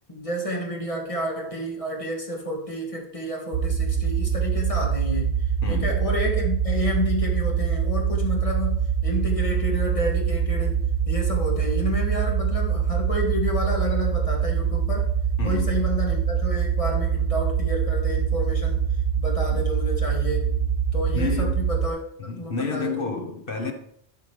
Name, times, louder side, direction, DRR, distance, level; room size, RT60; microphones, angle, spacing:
voice 1, 0.1-10.8 11.1-15.1 15.4-18.8 19.2-20.6 20.9-22.0 22.4-23.1, equal, 30° left, 1.9 m, -30 dB
sound 1, 3.5-21.9, right 7 dB, 55° right, 0.7 m, -24 dB
voice 2, 5.6-6.0 9.0-9.2 15.4-15.8 19.5-19.7 21.1-21.7 22.2-23.7, left 4 dB, 55° left, 1.3 m, -30 dB
11.5 x 5.7 x 3.3 m
omnidirectional pair, 1.2 m